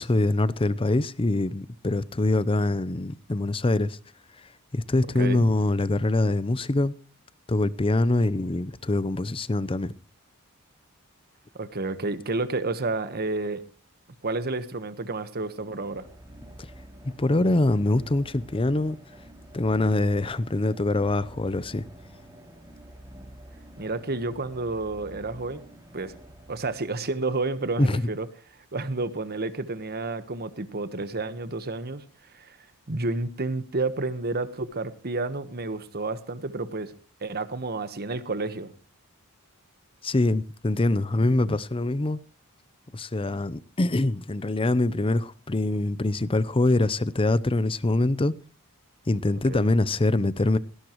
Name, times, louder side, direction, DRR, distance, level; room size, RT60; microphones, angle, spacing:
voice 1, 0.0-4.0 4.7-6.9 7.5-9.9 17.0-19.0 19.5-21.8 27.8-28.1 40.0-42.2 42.9-48.4 49.1-50.6, left 2 dB, 25° left, 0.6 m, -24 dB
voice 2, 11.5-13.6 14.2-16.1 23.8-25.6 25.9-26.1 26.5-28.3 28.7-32.0 32.3-32.6 32.9-36.9 37.2-38.7 49.5-49.7, right 3 dB, 45° right, 1.3 m, -30 dB
sound 1, 15.3-27.2, right 1 dB, 15° right, 3.5 m, -48 dB
18.0 x 17.0 x 3.1 m
head